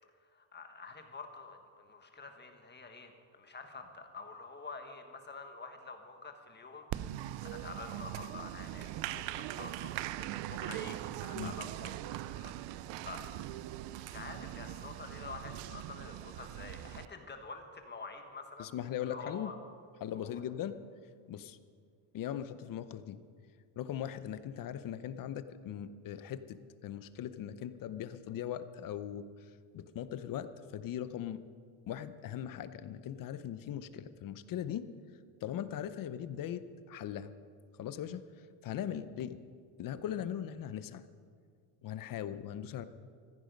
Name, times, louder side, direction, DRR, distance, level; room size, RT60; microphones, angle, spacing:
voice 1, 0.3-12.5 13.0-13.3 13.9-18.7 19.0-19.5 20.1-20.4, left 4 dB, 20° left, 5 dB, 1.3 m, -48 dB
Applause, 6.9-17.1, right 14 dB, 65° right, 0.6 m, -41 dB
voice 2, 18.6-19.5 20.0-20.8 21.3-21.6 22.1-23.2 23.8-26.6 26.8-31.4 31.9-34.9 35.4-36.6 36.9-37.3 37.8-39.4 39.8-41.0 41.8-42.8, left 10 dB, 45° left, 12 dB, 0.8 m, -39 dB
15.5 x 14.5 x 5.3 m, 2.1 s
cardioid pair, 145°, 48 cm